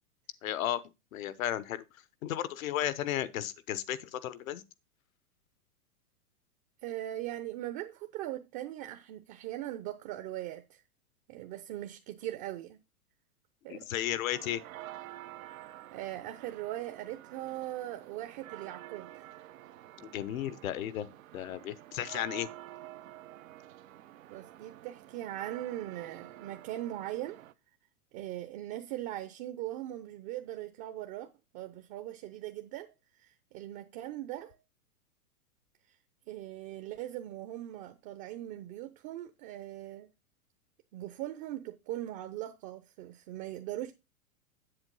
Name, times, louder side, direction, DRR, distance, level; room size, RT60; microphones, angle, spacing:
voice 1, 0.4-0.8 1.1-1.8 2.2-4.6 13.7-14.6 20.0-21.1 21.3-22.5, left 12 dB, 65° left, 1.0 m, -34 dB
voice 2, 6.8-10.8 11.3-12.8 13.6-13.9 15.9-19.2 24.3-27.4 28.1-31.3 31.5-32.9 33.2-34.6 36.3-40.1 40.9-43.9, right 14 dB, 40° right, 0.9 m, -40 dB
sound 1, 14.3-27.5, right 14 dB, 65° right, 0.9 m, -49 dB
8.0 x 7.5 x 4.0 m
hypercardioid pair, 125°, 44 cm